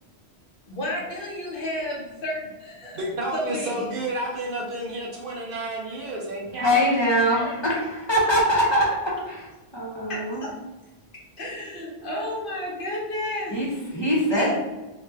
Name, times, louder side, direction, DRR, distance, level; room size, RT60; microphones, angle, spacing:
voice 1, 0.7-3.0 3.3-3.8 7.2-7.8 10.1-10.5 11.4-13.5 13.9-14.5, left 1 dB, 55° left, -4 dB, 1.0 m, -32 dB
voice 2, 2.9-6.8, right 1 dB, 60° right, -2 dB, 0.8 m, -30 dB
voice 3, 6.6-7.7 8.1-8.9 9.3-10.5 13.5-14.5, equal, 25° left, -6 dB, 0.9 m, -22 dB
3.2 x 2.4 x 3.2 m, 1.1 s
omnidirectional pair, 1.1 m